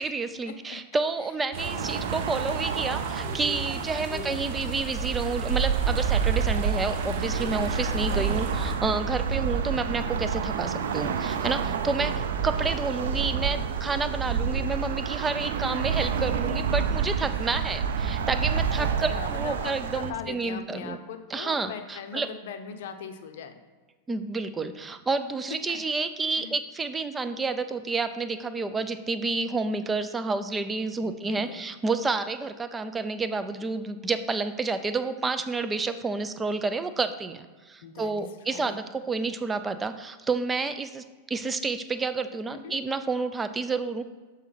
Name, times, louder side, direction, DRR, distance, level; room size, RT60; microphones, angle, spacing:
voice 1, 0.0-12.1 12.4-21.0 21.3-22.3 24.1-44.0, right 3 dB, 15° right, 10 dB, 0.3 m, -30 dB
sound 1, 1.5-8.8, right 2 dB, 50° right, 1.1 m, -35 dB
sound 2, 1.6-20.1, right 7 dB, 85° right, 0.5 m, -29 dB
voice 2, 3.9-4.4 8.2-8.4 11.9-12.3 18.8-23.5 25.7-25.8 26.3-26.5 31.0-31.6 37.8-38.8 42.5-42.8, left 7 dB, 75° left, 7 dB, 0.7 m, -40 dB
7.3 x 4.1 x 3.9 m, 1.4 s
supercardioid pair, 135°, 0 cm